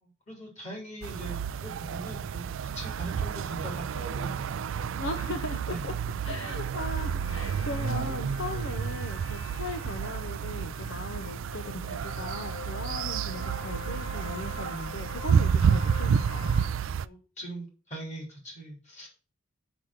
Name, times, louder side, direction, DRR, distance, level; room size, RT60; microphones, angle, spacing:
voice 1, 0.0-4.4 5.6-5.8 17.0-19.1, right 1 dB, 35° left, -1 dB, 3.9 m, -41 dB
sound 1, 1.0-17.0, right 7 dB, 65° right, 0.3 m, -30 dB
voice 2, 5.0-6.0 6.2-16.5, left 2 dB, 60° left, 6 dB, 0.7 m, -38 dB
sound 2, 6.7-16.7, left 7 dB, 80° left, 1.1 m, -46 dB
6.2 x 5.9 x 6.4 m, 0.35 s
head